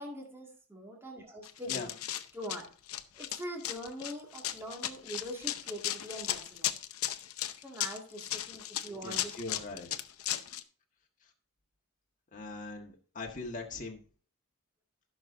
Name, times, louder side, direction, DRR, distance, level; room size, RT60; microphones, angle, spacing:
voice 1, 0.0-1.9 2.3-2.7 3.1-6.7 7.6-9.8, equal, 10° right, -1 dB, 2.0 m, -43 dB
Run, 1.4-10.6, left 12 dB, 80° left, 0.7 m, -36 dB
voice 2, 9.0-9.9 12.3-14.0, left 3 dB, 35° left, 0 dB, 1.5 m, -41 dB
15.0 x 6.5 x 2.6 m, 0.40 s
head